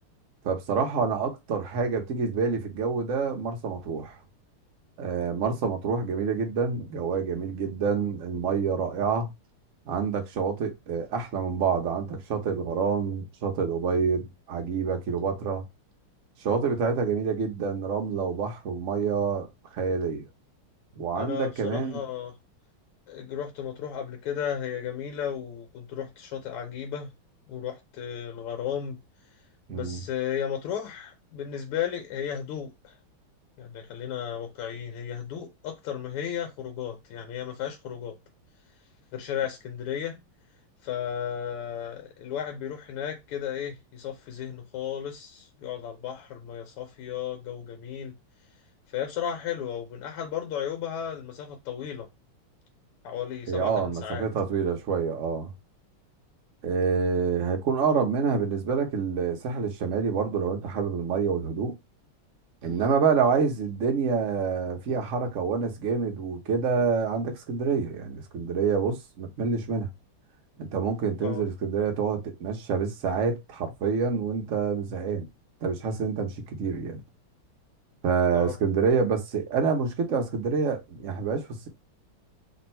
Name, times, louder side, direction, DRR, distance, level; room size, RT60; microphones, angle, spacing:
voice 1, 0.4-4.1 5.0-9.3 9.9-15.6 16.4-19.5 19.7-20.3 20.9-22.0 29.7-30.0 53.5-55.5 56.6-61.7 62.6-69.9 70.6-75.3 75.6-77.0 78.0-81.7, right 5 dB, 50° right, 0.9 m, -27 dB
voice 2, 21.2-22.4 23.1-27.1 27.5-29.0 29.7-33.0 33.6-38.2 39.1-40.2 40.8-48.1 48.9-52.1 53.0-54.3 71.2-71.4 78.3-78.5, left 9 dB, 85° left, 1.6 m, -34 dB
3.6 x 2.7 x 4.3 m
omnidirectional pair, 2.4 m